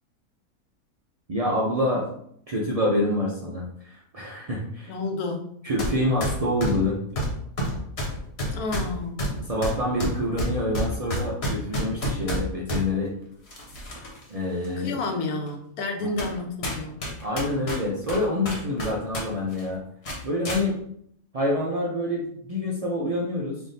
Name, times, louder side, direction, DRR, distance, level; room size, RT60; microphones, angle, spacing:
voice 1, 1.3-2.1 2.5-4.9 5.6-7.0 9.4-13.1 14.3-15.0 16.0-16.1 17.2-19.8 20.2-20.8 21.3-23.6, left 1 dB, 70° right, -4 dB, 0.3 m, -26 dB
voice 2, 4.9-5.5 8.5-9.3 14.8-17.0, left 2 dB, 80° left, 4 dB, 1.2 m, -30 dB
sound 1, 5.8-5.9 6.2-12.8 13.5-14.2 14.6-14.7 15.5-15.6 16.2-16.4 16.6-19.2 19.5-19.7 20.0-20.6, equal, 45° left, 1.2 m, -29 dB
3.4 x 2.6 x 4.0 m, 0.68 s
omnidirectional pair, 1.5 m